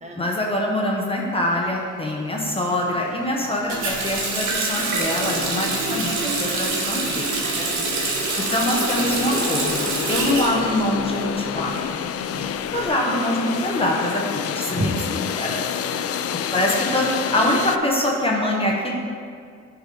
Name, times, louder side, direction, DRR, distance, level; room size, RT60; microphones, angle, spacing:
voice 1, 0.2-7.4 8.4-12.0 12.7-15.0 15.4-15.6 16.5-18.9, left 1 dB, 20° left, -2 dB, 1.0 m, -24 dB
sound 1, 1.8-1.9 2.2-17.8, left 8 dB, 50° left, 0.4 m, -30 dB
Water tap faucet, 3.7-11.4 11.7-12.8, right 3 dB, 75° right, 1.5 m, -26 dB
voice 2, 7.5-8.2 12.3-12.6 14.6-15.0 15.8-16.5, right 1 dB, 20° right, -1 dB, 1.2 m, -32 dB
9.1 x 3.7 x 5.0 m, 2.2 s
cardioid pair, 90°, 30 cm